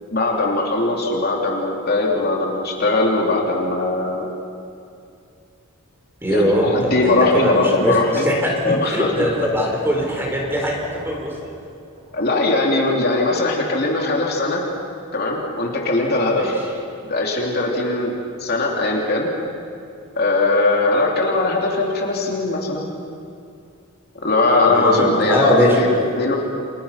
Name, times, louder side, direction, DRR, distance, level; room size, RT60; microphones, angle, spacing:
voice 1, 0.1-4.3 6.3-8.3 8.6-9.1 12.1-14.6 15.1-16.6 17.1-18.1 18.4-19.3 20.1-22.9 24.2-26.4, left 2 dB, 45° left, -1 dB, 3.4 m, -20 dB
voice 2, 6.2-11.5 16.3-16.5 24.7-26.1, equal, 10° right, -1 dB, 4.6 m, -21 dB
sound 1, 6.2-12.3, right 1 dB, 35° right, 7.5 m, -39 dB
29.5 x 26.5 x 5.9 m, 2.5 s
head